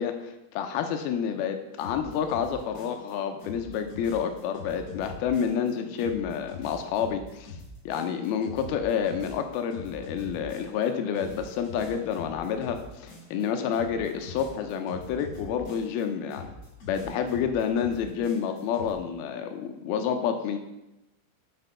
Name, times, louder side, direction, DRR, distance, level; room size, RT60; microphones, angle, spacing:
voice 1, 0.0-7.5 7.9-16.4 16.9-20.6, left 7 dB, 85° left, 6 dB, 2.6 m, -29 dB
sound 1, 1.8-3.1 3.4-5.7 6.0-10.9 11.1-13.5 13.7-16.0 16.3-18.9, left 3 dB, 45° left, 2.9 m, -43 dB
7.9 x 6.1 x 5.6 m, 0.95 s
omnidirectional pair, 4.4 m